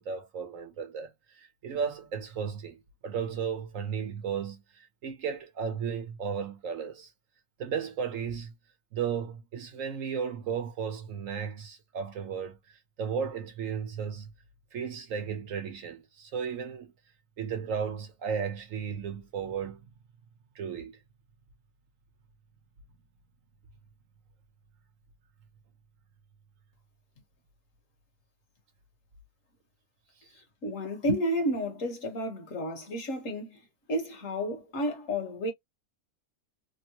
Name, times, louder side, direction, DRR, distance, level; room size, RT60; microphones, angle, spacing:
voice 1, 0.0-7.1 7.6-8.5 8.9-14.3 14.7-16.9 17.4-19.8 20.5-21.0, right 7 dB, 60° right, 1.2 m, -34 dB
voice 2, 30.6-33.6 33.9-35.5, equal, 60° left, 1.6 m, -31 dB
3.6 x 2.1 x 2.9 m
omnidirectional pair, 1.6 m